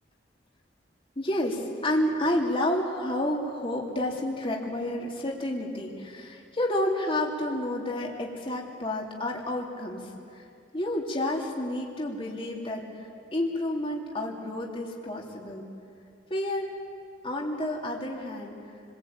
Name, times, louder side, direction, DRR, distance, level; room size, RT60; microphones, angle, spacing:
voice 1, 1.1-10.5 10.7-15.7 16.3-16.8 17.2-18.6, left 1 dB, 30° left, -1 dB, 3.0 m, -30 dB
29.0 x 22.5 x 8.8 m, 2.4 s
head